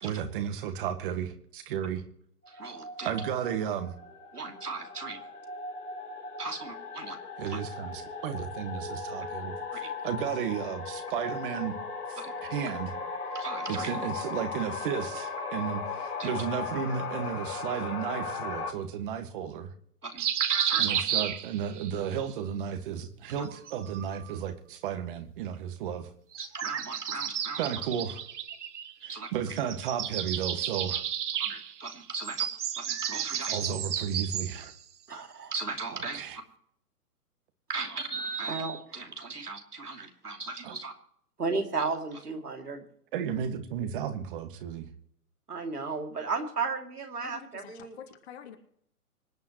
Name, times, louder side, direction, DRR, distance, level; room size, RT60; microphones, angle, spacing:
voice 1, 0.0-2.0 3.0-3.9 7.4-11.7 12.1-12.9 13.7-19.7 20.8-26.1 27.6-28.2 29.1-31.0 33.5-34.7 36.1-36.4 40.6-40.8 43.1-44.9, right 8 dB, 35° right, 9 dB, 1.8 m, -33 dB
sound 1, 2.4-18.7, left 4 dB, 80° left, 3.9 m, -37 dB
voice 2, 2.5-3.2 4.3-5.2 6.4-7.2 7.5-7.6 9.7-9.9 12.2-12.3 13.3-13.9 16.2-16.3 20.0-21.0 26.4-27.6 29.1-29.3 31.4-32.5 32.8-33.6 35.1-36.2 37.7-40.9 41.4-42.9 45.5-48.0, right 4 dB, 85° right, 3 dB, 2.9 m, -35 dB
sound 2, 20.2-21.9 23.3-24.4 26.3-29.3 29.6-34.7, right 9 dB, 50° right, 1.3 m, -32 dB
voice 3, 47.2-48.6, left 8 dB, 45° left, 4 dB, 2.8 m, -47 dB
25.5 x 9.4 x 3.1 m, 0.68 s
figure-of-eight pair, 130°, 45 cm